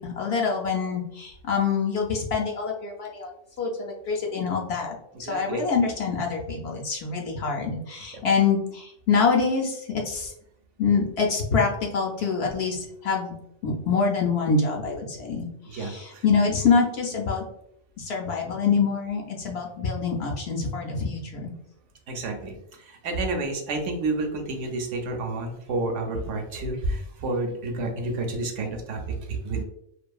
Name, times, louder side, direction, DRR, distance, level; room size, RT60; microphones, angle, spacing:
voice 1, 0.0-3.3 3.6-10.3 10.8-13.3 13.6-17.4 18.0-21.5, left 5 dB, 65° left, 0 dB, 0.7 m, -25 dB
voice 2, 5.3-5.6 8.1-8.2 15.7-16.2 22.1-29.6, right 2 dB, 75° right, 3 dB, 0.9 m, -30 dB
2.6 x 2.4 x 2.2 m, 0.77 s
omnidirectional pair, 1.3 m